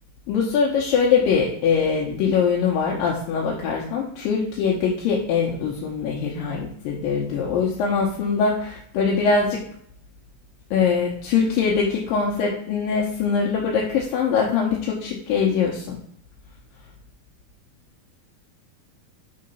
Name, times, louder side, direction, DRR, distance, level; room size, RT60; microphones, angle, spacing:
voice 1, 0.3-9.6 10.7-16.0, left 5 dB, 80° left, -2 dB, 2.5 m, -22 dB
6.3 x 3.8 x 5.5 m, 0.66 s
omnidirectional pair, 4.1 m